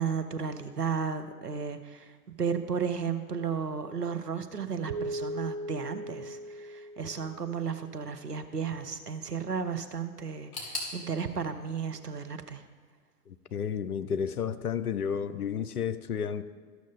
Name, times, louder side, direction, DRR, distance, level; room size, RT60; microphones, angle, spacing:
voice 1, 0.0-2.1 2.4-12.6, right 6 dB, 90° right, 8 dB, 0.8 m, -34 dB
Keyboard (musical), 4.9-7.8, right 1 dB, 30° right, 0.4 m, -38 dB
sound 1, 10.5-13.4 13.6-14.5 14.8-14.9 15.7-15.8, left 2 dB, 60° left, 3.0 m, -43 dB
voice 2, 13.3-16.4, left 7 dB, 75° left, 13 dB, 0.7 m, -32 dB
13.5 x 6.2 x 3.6 m, 1.4 s
figure-of-eight pair, 105°, 46 cm